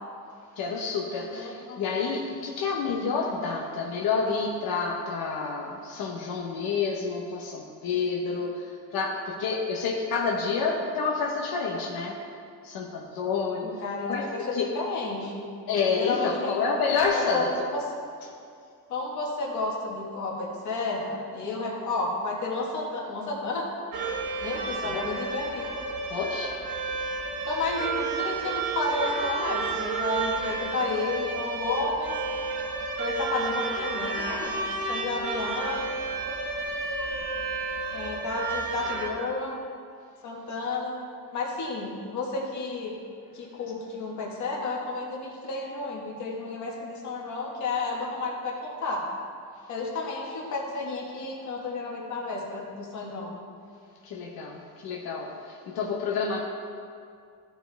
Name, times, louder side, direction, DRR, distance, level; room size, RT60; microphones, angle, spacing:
voice 1, 0.5-12.2 12.6-13.7 14.1-14.7 15.7-17.5 18.3-18.4 24.8-25.1 26.1-26.6 27.1-27.2 54.0-56.4, left 5 dB, 90° left, -1 dB, 1.0 m, -29 dB
voice 2, 1.2-1.8 13.6-15.4 16.0-16.6 17.1-17.4 18.9-23.7 24.4-25.7 27.4-32.1 33.0-36.0 37.9-39.6 40.2-41.0 41.3-42.9 43.3-49.0 49.7-53.3, left 3 dB, 55° left, -2 dB, 1.6 m, -31 dB
sound 1, 23.9-39.1, right 3 dB, 80° right, 1.2 m, -31 dB
14.5 x 4.8 x 3.4 m, 2.3 s
cardioid pair, 175°, 35 cm